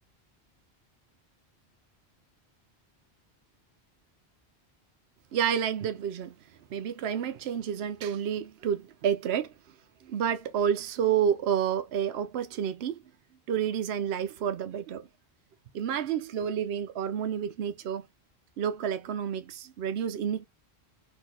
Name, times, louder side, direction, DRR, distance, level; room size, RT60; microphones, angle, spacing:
voice 1, 5.3-6.4 6.7-9.5 10.0-13.0 13.5-15.1 15.7-18.1 18.6-20.4, right 8 dB, 75° right, 0.9 m, -29 dB
4.2 x 2.7 x 2.8 m
omnidirectional pair, 1.1 m